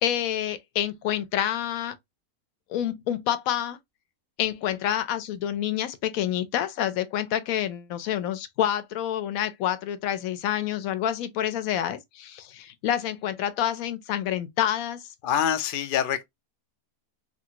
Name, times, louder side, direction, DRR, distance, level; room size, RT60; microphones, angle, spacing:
voice 1, 0.0-1.9 2.7-3.8 4.4-15.0, left 10 dB, 75° left, 0.9 m, -28 dB
voice 2, 15.2-16.2, left 9 dB, 90° left, 0.4 m, -25 dB
2.8 x 2.6 x 2.8 m
omnidirectional pair, 1.6 m